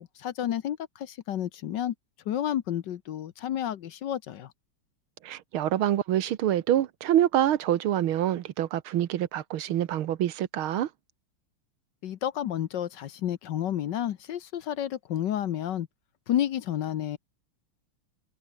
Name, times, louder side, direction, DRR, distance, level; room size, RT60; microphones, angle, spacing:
voice 1, 0.0-1.9 2.3-4.5 12.0-15.9 16.3-17.2, left 11 dB, 65° left, 1.4 m, -30 dB
voice 2, 5.2-10.9, right 12 dB, 80° right, 1.8 m, -26 dB
omnidirectional pair, 2.3 m